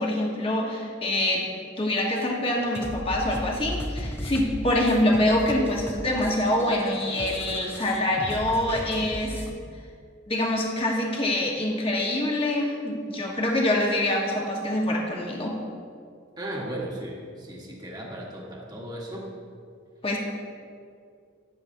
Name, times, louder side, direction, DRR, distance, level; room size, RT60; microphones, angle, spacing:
voice 1, 0.0-1.4 1.8-9.4 10.3-15.6 20.0-20.2, left 1 dB, 25° left, -1 dB, 1.3 m, -25 dB
sound 1, 2.6-9.5, equal, 10° left, 0.6 m, -36 dB
voice 2, 16.4-19.3, right 1 dB, 20° right, -2 dB, 1.4 m, -36 dB
13.0 x 9.9 x 2.7 m, 2.3 s
head